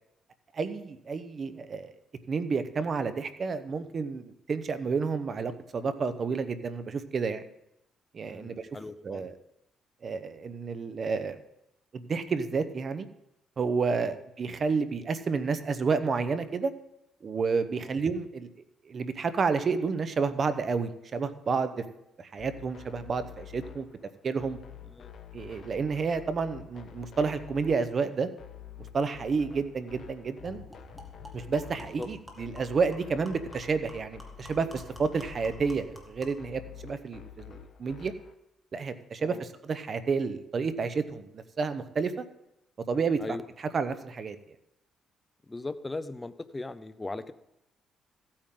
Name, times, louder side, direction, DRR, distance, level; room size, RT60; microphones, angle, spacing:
voice 1, 0.5-1.9 2.3-7.4 8.1-8.7 9.0-9.3 10.0-11.4 11.9-13.1 13.6-16.7 17.2-18.5 18.9-21.7 22.2-23.9 24.2-24.6 25.3-28.3 28.9-30.6 31.3-38.1 38.7-42.3 42.9-43.4 43.7-44.4, right 5 dB, 45° right, 11 dB, 0.9 m, -30 dB
voice 2, 8.2-9.3 14.0-14.2 17.8-18.0 24.9-25.1 32.0-32.1 39.2-39.4 43.2-43.4 45.5-47.3, left 2 dB, 20° left, 13 dB, 0.6 m, -38 dB
sound 1, 22.4-38.3, left 9 dB, 55° left, 1.2 m, -48 dB
sound 2, 29.5-29.6 29.9-30.1 30.4-36.5, left 1 dB, 5° right, 2.1 m, -49 dB
15.0 x 8.8 x 3.8 m, 0.84 s
cardioid pair, 90°, 0 cm